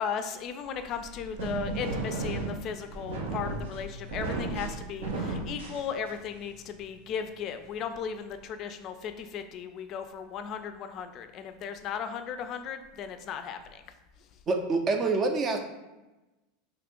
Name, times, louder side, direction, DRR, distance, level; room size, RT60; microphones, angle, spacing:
voice 1, 0.0-13.8, left 7 dB, 45° left, 9 dB, 0.3 m, -36 dB
sound 1, 0.8-6.4, right 2 dB, 85° right, 0.6 m, -34 dB
voice 2, 14.5-15.6, right 3 dB, 30° right, 4 dB, 0.5 m, -26 dB
3.0 x 2.4 x 3.6 m, 1.0 s
hypercardioid pair, 110°, 0 cm